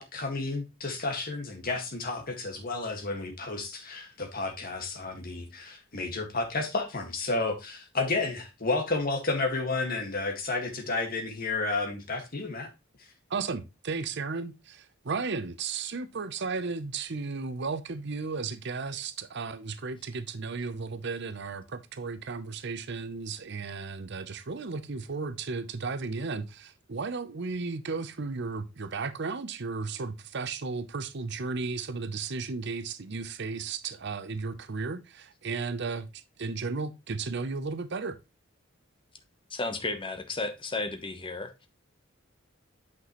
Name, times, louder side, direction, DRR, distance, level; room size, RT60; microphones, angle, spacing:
voice 1, 0.0-12.7, left 3 dB, 45° left, 1.8 m, -31 dB
voice 2, 13.3-38.2, right 4 dB, 60° right, 0.7 m, -34 dB
voice 3, 39.5-41.7, left 3 dB, 25° left, 1.0 m, -33 dB
8.4 x 6.0 x 3.0 m
head